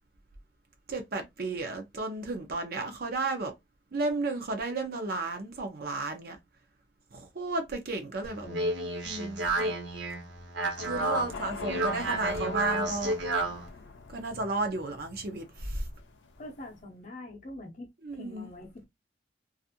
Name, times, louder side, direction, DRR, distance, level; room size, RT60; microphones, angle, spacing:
voice 1, 0.9-3.5 3.9-6.4 7.1-8.5 9.0-9.8 10.8-13.1 14.1-15.9 18.0-18.5, right 2 dB, 55° right, 0.6 m, -33 dB
Speech, 8.2-13.7, right 2 dB, 80° right, 1.1 m, -31 dB
voice 2, 8.4-8.7 16.4-18.8, left 1 dB, 45° left, 0.6 m, -44 dB
sound 1, 10.8-16.8, left 4 dB, 85° left, 0.5 m, -45 dB
2.5 x 2.4 x 2.7 m
head